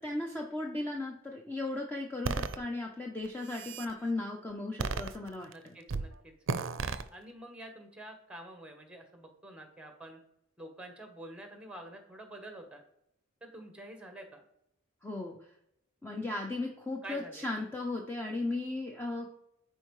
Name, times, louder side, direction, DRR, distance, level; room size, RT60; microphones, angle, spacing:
voice 1, 0.0-5.8 15.0-15.4 16.0-19.4, left 2 dB, 10° left, 1 dB, 0.5 m, -36 dB
sound 1, 2.2-2.6 3.3-3.9 4.8-5.5 5.9-6.1 6.5-7.0, right 4 dB, 65° right, 0.5 m, -33 dB
voice 2, 5.5-6.3 7.1-10.2 10.6-12.8 13.4-14.4 17.0-17.5, right 1 dB, 5° right, 5 dB, 1.1 m, -48 dB
10.0 x 4.5 x 3.1 m, 0.77 s
head